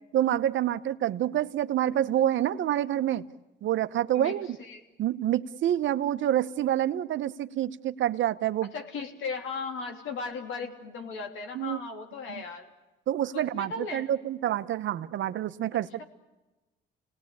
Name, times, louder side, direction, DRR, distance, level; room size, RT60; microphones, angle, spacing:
voice 1, 0.1-3.2 3.6-4.5 5.0-8.7 11.5-11.8 12.3-12.4 13.1-16.0, right 12 dB, 70° right, 12 dB, 1.0 m, -27 dB
voice 2, 4.1-4.8 8.7-12.7 13.3-14.1 16.0-16.1, left 4 dB, 80° left, 4 dB, 3.2 m, -37 dB
29.5 x 19.0 x 8.6 m, 1.1 s
cardioid pair, 90°, 20 cm